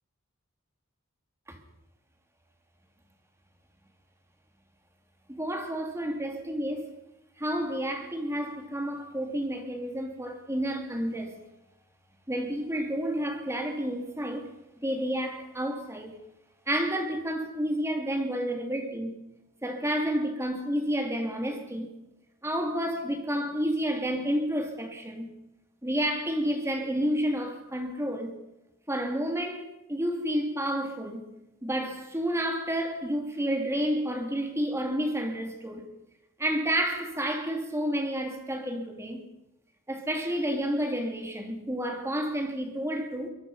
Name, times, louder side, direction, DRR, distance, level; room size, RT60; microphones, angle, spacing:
voice 1, 5.3-7.0 7.4-11.4 12.3-14.5 14.8-16.1 16.7-19.2 19.6-21.9 22.4-25.3 25.8-28.3 28.9-31.2 31.6-35.9 36.4-39.3 39.9-43.3, equal, 15° right, 3.0 m, -30 dB
25.0 x 22.0 x 5.7 m
head